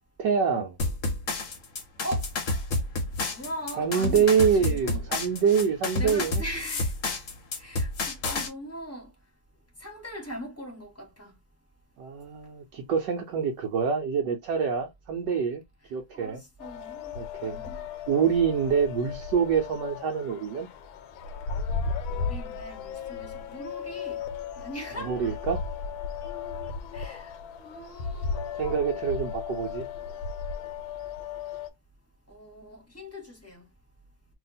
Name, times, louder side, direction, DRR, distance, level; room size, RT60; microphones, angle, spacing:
voice 1, 0.2-0.8 3.8-6.4 12.0-15.6 15.9-16.4 17.1-17.6 18.1-20.7 25.0-25.6 28.6-29.9, right 6 dB, 70° right, 1.1 m, -26 dB
sound 1, 0.8-8.5, left 2 dB, 50° left, 1.0 m, -29 dB
voice 2, 3.3-5.0 6.0-6.9 7.6-9.1 9.8-11.3 16.1-17.1 17.4-17.8 22.1-24.2 24.6-25.1 26.9-28.8 32.3-33.6, equal, 10° left, 1.3 m, -40 dB
sound 2, 16.6-31.7, left 5 dB, 80° left, 1.4 m, -35 dB
2.8 x 2.8 x 4.0 m
omnidirectional pair, 2.2 m